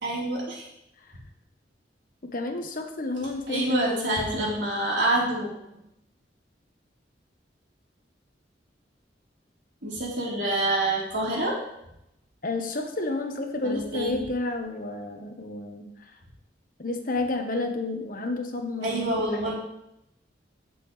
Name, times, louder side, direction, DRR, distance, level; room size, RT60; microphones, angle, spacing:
voice 1, 0.0-0.7 3.5-5.5 9.8-11.6 13.6-14.2 18.8-19.6, right 1 dB, 80° right, -5 dB, 4.0 m, -27 dB
voice 2, 2.3-4.6 12.4-15.9 16.8-19.6, left 2 dB, 50° left, 4 dB, 1.2 m, -31 dB
15.0 x 6.8 x 3.3 m, 0.83 s
head